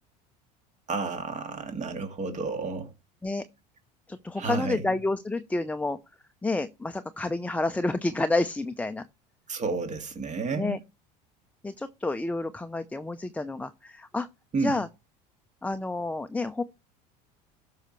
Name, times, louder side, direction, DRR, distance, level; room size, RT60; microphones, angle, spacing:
voice 1, 0.9-2.9 4.4-4.8 9.5-10.8 14.5-14.8, right 4 dB, 35° right, 2.2 m, -31 dB
voice 2, 4.1-6.0 6.4-9.0 10.5-10.8 11.6-14.3 14.6-14.9 15.6-16.6, left 2 dB, 5° left, 0.6 m, -29 dB
13.0 x 5.7 x 3.1 m
hypercardioid pair, 85°, 21 cm